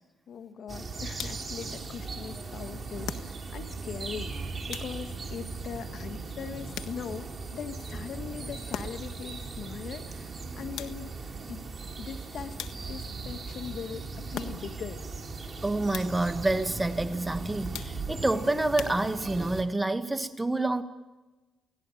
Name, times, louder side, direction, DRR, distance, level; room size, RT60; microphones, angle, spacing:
voice 1, 0.3-11.2 11.5-11.6 12.0-12.6 12.9-15.0, left 7 dB, 65° left, 1.6 m, -40 dB
sound 1, 0.7-19.6, right 3 dB, 30° right, 3.3 m, -38 dB
sound 2, 1.1-1.6 3.0-3.7 4.7-5.3 6.7-7.3 8.7-9.2 10.8-11.3 12.6-13.2 14.3-14.9 15.9-16.4 17.7-18.3 18.8-19.5, left 9 dB, 80° left, 1.5 m, -41 dB
voice 2, 15.6-20.8, right 2 dB, 10° right, 1.6 m, -28 dB
29.5 x 17.5 x 9.2 m
cardioid pair, 90°, 0 cm